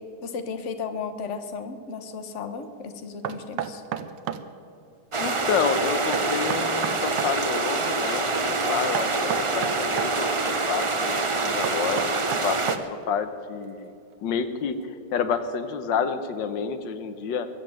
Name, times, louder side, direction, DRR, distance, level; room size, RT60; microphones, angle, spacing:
voice 1, 0.2-3.8, left 5 dB, 45° left, 8 dB, 1.3 m, -34 dB
Knock, 3.2-4.5 6.1-7.4 8.9-10.1 11.6-13.1, right 9 dB, 85° right, 1.4 m, -31 dB
sound 1, 5.1-12.8, right 3 dB, 55° right, 0.3 m, -26 dB
voice 2, 5.2-12.2 12.4-12.7 13.1-13.9 14.2-17.5, left 6 dB, 80° left, 10 dB, 1.7 m, -29 dB
22.5 x 7.6 x 7.6 m, 2.6 s
omnidirectional pair, 1.9 m